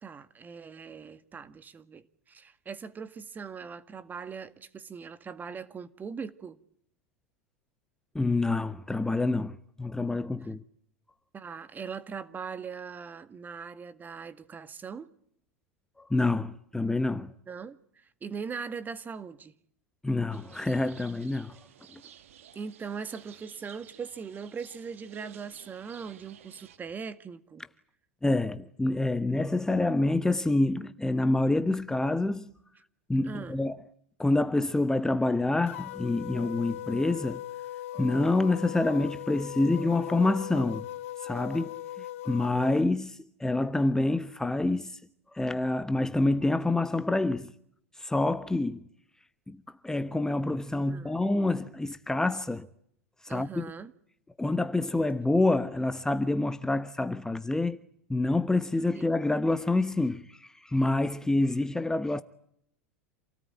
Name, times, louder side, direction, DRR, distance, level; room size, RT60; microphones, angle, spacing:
voice 1, 0.0-6.6 11.3-15.1 17.5-19.5 22.6-27.6 33.2-33.6 42.0-42.1 50.9-51.2 53.3-53.9 58.9-59.1, right 6 dB, 25° right, 1.9 m, -40 dB
voice 2, 8.1-10.6 16.0-17.3 20.0-21.7 21.9-22.0 28.2-32.5 33.1-33.8 34.2-37.4 37.9-40.9 41.2-41.8 42.2-45.0 45.3-47.5 47.9-48.9 49.5-52.7 53.2-53.6 54.4-57.8 58.1-62.2, left 2 dB, 10° left, 1.2 m, -27 dB
sound 1, 20.3-26.8, right 10 dB, 75° right, 2.0 m, -53 dB
sound 2, 35.7-42.8, left 14 dB, 65° left, 1.1 m, -39 dB
28.0 x 18.5 x 9.1 m
hypercardioid pair, 85°, 7 cm